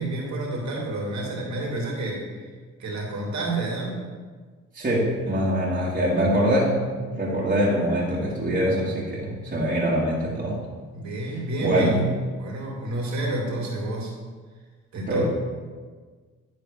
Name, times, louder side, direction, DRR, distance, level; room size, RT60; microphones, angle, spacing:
voice 1, 0.0-2.5 2.8-4.0 10.9-12.1 12.4-14.1 14.9-15.3, right 2 dB, 65° right, -2 dB, 2.4 m, -29 dB
voice 2, 4.7-10.6 11.6-12.0 15.1-15.3, equal, 30° right, -8 dB, 2.3 m, -24 dB
10.5 x 4.2 x 5.1 m, 1.5 s
cardioid pair, 90°, 30 cm